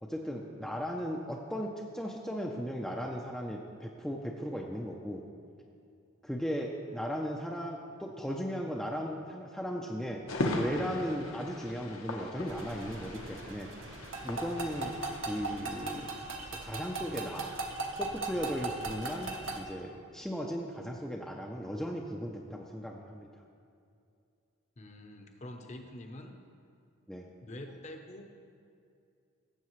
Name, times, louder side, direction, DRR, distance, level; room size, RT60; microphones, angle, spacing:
voice 1, 0.0-5.2 6.2-10.2 10.5-13.7 14.2-16.2 16.6-17.5 17.9-23.3 27.1-27.3, equal, ahead, -1 dB, 0.5 m, -37 dB
sound 1, 10.3-15.6, left 1 dB, 75° left, 1.1 m, -38 dB
sound 2, 12.5-19.6, right 2 dB, 65° right, 1.0 m, -39 dB
voice 2, 24.8-26.4 27.4-28.3, left 1 dB, 35° left, 4 dB, 0.8 m, -46 dB
17.0 x 7.5 x 3.1 m, 2.5 s
head